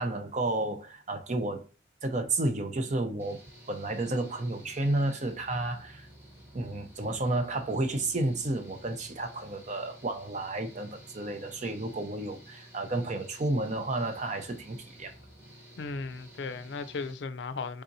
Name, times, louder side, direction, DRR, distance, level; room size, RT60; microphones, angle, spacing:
voice 1, 0.0-1.7 2.0-3.4 3.7-6.1 6.5-15.1, right 2 dB, 40° right, 0.7 m, -31 dB
Engine / Mechanical fan, 3.2-17.1, right 1 dB, 15° right, 1.1 m, -52 dB
voice 2, 15.8-17.8, left 4 dB, 75° left, 0.4 m, -36 dB
4.1 x 3.6 x 2.6 m
head